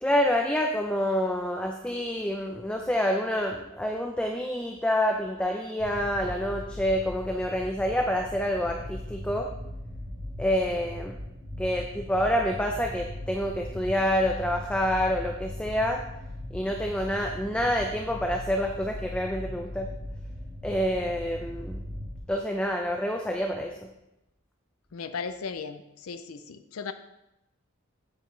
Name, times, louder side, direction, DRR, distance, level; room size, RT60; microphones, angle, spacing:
voice 1, 0.0-9.5 10.4-11.2 11.6-16.0 16.5-19.9 20.6-21.8 22.3-23.7, equal, 5° left, 2 dB, 0.4 m, -27 dB
sound 1, 5.8-22.2, left 1 dB, 50° right, 3.3 m, -39 dB
voice 2, 24.9-26.9, left 5 dB, 80° left, 9 dB, 0.5 m, -36 dB
8.5 x 8.1 x 3.2 m, 0.90 s
head